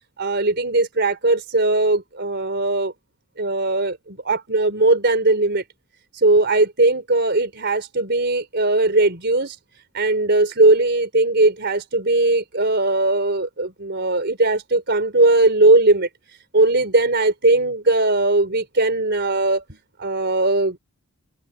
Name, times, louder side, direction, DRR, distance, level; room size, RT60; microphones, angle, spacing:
voice 1, 0.2-2.9 3.4-5.6 6.2-9.5 9.9-16.1 16.5-19.6 20.0-20.8, right 2 dB, 50° right, 4.1 m, -19 dB
head